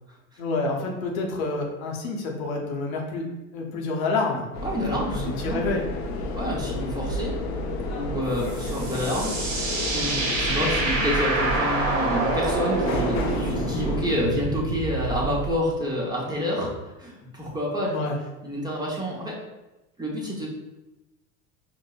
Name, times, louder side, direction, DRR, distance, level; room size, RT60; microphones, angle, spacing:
voice 1, 0.4-3.2 3.5-4.5 4.9-5.8 17.9-18.2, left 3 dB, 80° left, 0 dB, 0.8 m, -28 dB
sound 1, 4.5-14.1, left 1 dB, 45° left, 0.5 m, -31 dB
voice 2, 4.6-5.7 6.3-7.3 7.9-16.7 17.0-18.1 18.4-19.4 20.0-20.5, equal, 10° right, -4 dB, 0.8 m, -28 dB
sound 2, 8.4-15.6, right 2 dB, 45° right, 0.9 m, -27 dB
4.4 x 2.1 x 2.3 m, 1.0 s
hypercardioid pair, 90°, 41 cm